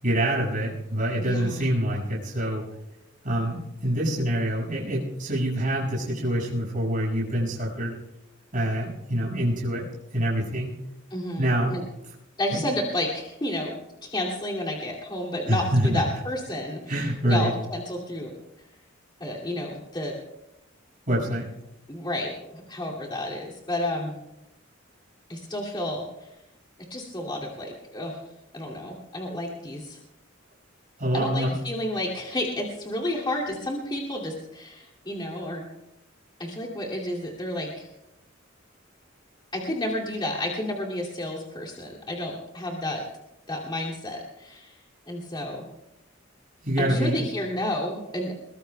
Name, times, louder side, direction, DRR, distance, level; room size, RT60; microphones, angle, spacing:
voice 1, 0.0-2.6 3.2-7.9 8.5-9.8 10.1-10.8 11.4-11.7 15.5-16.0 16.9-17.5 21.1-21.5 31.0-31.6 46.6-47.2, right 1 dB, 45° right, -5 dB, 6.4 m, -25 dB
voice 2, 1.2-1.7 11.1-11.8 12.4-13.8 14.0-18.3 19.2-20.2 21.9-24.2 25.3-26.3 26.9-28.2 28.5-30.0 31.1-35.7 36.4-37.9 39.5-43.0 43.5-44.8 45.1-45.7 46.8-48.5, left 1 dB, 25° left, -3 dB, 2.7 m, -31 dB
22.5 x 22.0 x 2.3 m, 0.90 s
head